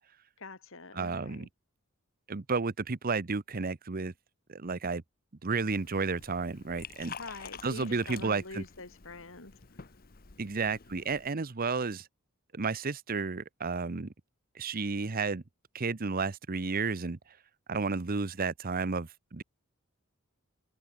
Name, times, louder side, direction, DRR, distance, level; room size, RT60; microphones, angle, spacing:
voice 1, 0.4-1.5 7.2-9.5, left 3 dB, 65° left, 3.0 m, -45 dB
voice 2, 0.9-1.5 2.3-4.1 4.5-5.0 5.4-7.1 7.6-8.6 10.4-12.1 12.5-14.1 14.5-15.4 15.7-17.2 17.7-19.4, right 4 dB, 40° right, 0.8 m, -32 dB
Liquid, 5.7-11.3, left 6 dB, 45° left, 1.2 m, -49 dB
head